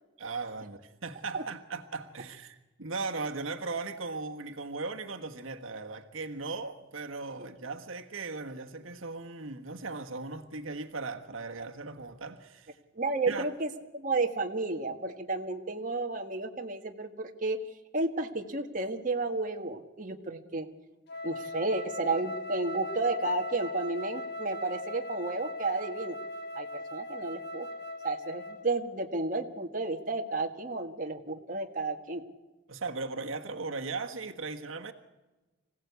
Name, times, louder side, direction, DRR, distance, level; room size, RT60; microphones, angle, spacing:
voice 1, 0.2-12.8 13.3-13.5 32.7-34.9, right 3 dB, 80° right, 1.4 m, -38 dB
voice 2, 12.9-17.6 17.9-20.7 21.2-26.2 26.5-27.7 28.0-32.2, right 3 dB, 40° right, 1.5 m, -32 dB
Wind instrument woodwind instrument, 21.1-28.7, left 1 dB, 55° left, 1.3 m, -39 dB
25.5 x 16.5 x 8.2 m
head